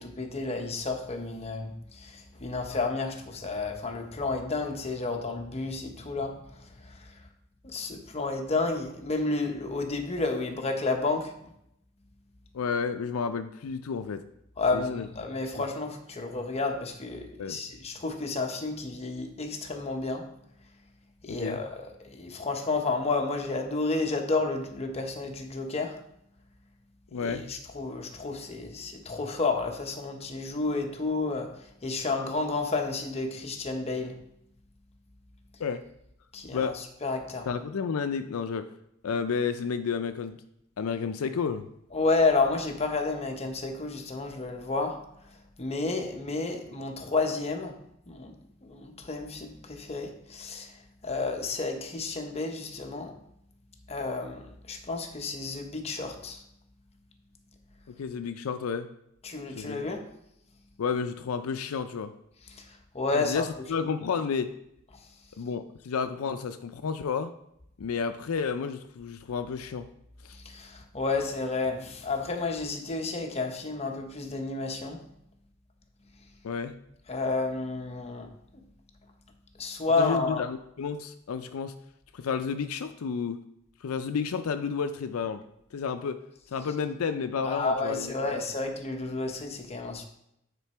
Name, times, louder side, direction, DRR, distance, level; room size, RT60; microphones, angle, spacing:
voice 1, 0.0-7.2 7.6-11.5 14.6-20.3 21.2-26.0 27.1-34.2 36.3-37.5 41.9-47.8 48.1-48.3 48.6-53.2 53.9-56.4 59.2-60.1 62.5-63.5 70.4-75.0 77.1-78.6 79.6-80.4 87.5-90.1, left 3 dB, 30° left, 4 dB, 0.9 m, -31 dB
voice 2, 12.5-14.2 14.7-15.1 17.4-17.6 21.3-21.6 27.1-27.4 35.6-35.8 36.5-36.8 37.5-38.7 39.0-40.4 40.8-41.7 57.9-58.9 59.6-59.8 60.8-62.1 63.1-64.5 65.4-67.3 67.8-69.9 70.2-70.4 76.4-76.7 80.0-81.7 82.1-83.4 83.8-85.4 85.7-86.2 86.5-88.1, left 6 dB, 80° left, 9 dB, 0.4 m, -31 dB
9.2 x 3.8 x 4.4 m, 0.77 s
head